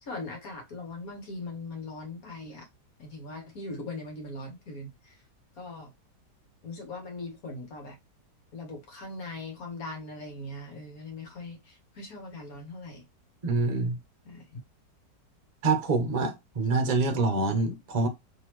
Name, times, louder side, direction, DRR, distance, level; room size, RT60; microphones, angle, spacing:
voice 1, 0.0-2.7 3.0-5.2 5.6-5.9 6.6-8.0 8.5-13.1 14.3-14.6, left 2 dB, 60° left, 1.8 m, -40 dB
voice 2, 13.4-14.0 15.6-18.1, right 3 dB, 35° right, 0.8 m, -26 dB
3.9 x 3.4 x 3.0 m
omnidirectional pair, 1.8 m